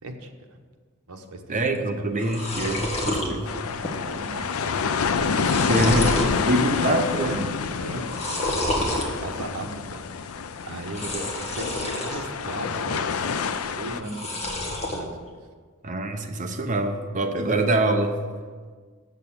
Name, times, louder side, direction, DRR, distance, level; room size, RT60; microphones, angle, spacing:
voice 1, 0.0-0.3 1.1-2.1 3.1-4.6 5.1-5.2 6.3-6.9 7.7-13.3 13.7-15.1, right 1 dB, 80° right, 4 dB, 1.1 m, -38 dB
voice 2, 1.5-3.5 5.4-7.5 11.1-11.3 15.8-18.2, right 1 dB, 35° right, 5 dB, 0.8 m, -25 dB
sound 1, 1.8-1.9 2.1-3.3 3.7-4.2 4.4-4.5 5.1-6.4 6.8-7.3 8.0-9.1 10.8-12.2 12.6-13.2 14.0-15.0, left 1 dB, 30° left, 1.4 m, -29 dB
sound 2, 3.4-14.0, left 5 dB, 65° left, 0.5 m, -28 dB
7.7 x 6.6 x 7.1 m, 1.5 s
head